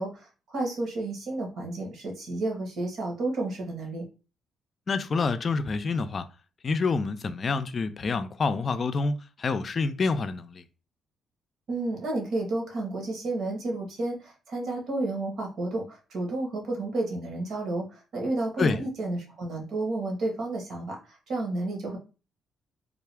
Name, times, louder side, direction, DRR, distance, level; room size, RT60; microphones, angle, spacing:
voice 1, 0.0-4.1 11.7-22.0, right 2 dB, 65° right, 1.5 m, -31 dB
voice 2, 4.9-6.2 6.6-10.6 18.6-18.8, left 4 dB, 45° left, 0.4 m, -27 dB
3.6 x 2.3 x 3.4 m
cardioid pair, 90°, 0 cm